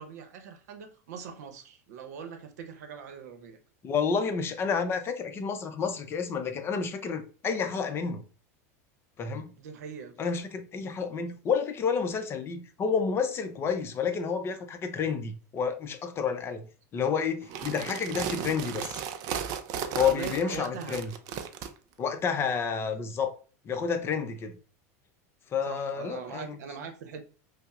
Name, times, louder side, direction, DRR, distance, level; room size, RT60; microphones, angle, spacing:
voice 1, 0.0-3.6 9.6-10.2 20.0-21.0 22.9-23.0 25.7-27.2, right 6 dB, 85° right, 0.7 m, -41 dB
voice 2, 3.8-8.2 9.2-9.5 10.2-16.7 16.9-19.0 20.0-21.1 22.0-23.3 23.6-24.5 25.5-26.6, left 6 dB, 30° left, 0.5 m, -30 dB
sound 1, 17.4-21.7, right 8 dB, 50° right, 0.4 m, -35 dB
5.3 x 2.0 x 2.4 m
supercardioid pair, 130°, 9 cm